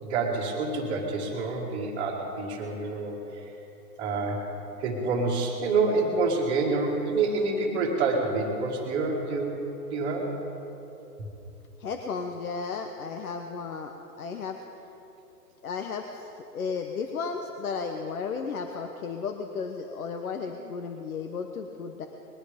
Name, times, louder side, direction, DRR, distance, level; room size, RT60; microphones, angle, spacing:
voice 1, 0.0-3.5 4.0-4.4 4.8-9.6 9.9-10.3 11.2-11.3, right 3 dB, 20° right, -8 dB, 1.9 m, -27 dB
voice 2, 11.8-14.6 15.6-22.1, left 5 dB, 60° left, 4 dB, 1.1 m, -34 dB
21.0 x 10.0 x 5.2 m, 3.0 s
hypercardioid pair, 140°, 49 cm